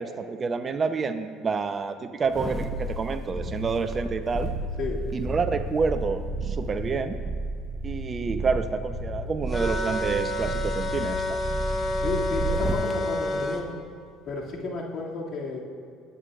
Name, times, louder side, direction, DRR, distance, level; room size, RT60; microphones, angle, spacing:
voice 1, 0.0-4.5 5.1-7.2 7.8-11.4, right 4 dB, 35° right, 9 dB, 0.7 m, -28 dB
sound 1, 2.2-12.9 13.4-13.5, right 2 dB, 10° right, 1.2 m, -32 dB
voice 2, 4.8-5.1 11.9-13.8 14.2-15.6, left 3 dB, 55° left, -3 dB, 2.3 m, -32 dB
sound 2, 9.5-13.6, left 1 dB, 30° left, 1.5 m, -29 dB
22.0 x 9.2 x 2.4 m, 2.4 s
supercardioid pair, 85°, 0 cm